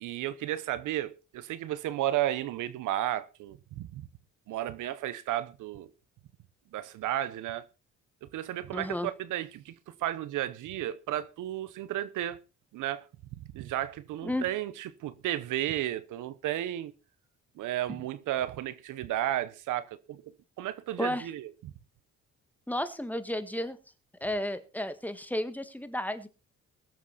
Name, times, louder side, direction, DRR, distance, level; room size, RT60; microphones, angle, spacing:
voice 1, 0.0-4.1 4.5-5.9 6.7-7.6 8.3-12.4 12.7-13.0 13.5-16.9 17.6-20.2 20.6-21.7, right 13 dB, 85° right, 1.0 m, -33 dB
voice 2, 8.7-9.1 14.2-14.4 21.0-21.3 22.7-23.8 24.2-26.3, left 1 dB, 5° left, 1.7 m, -32 dB
22.0 x 7.5 x 4.2 m
cardioid pair, 90°, 30 cm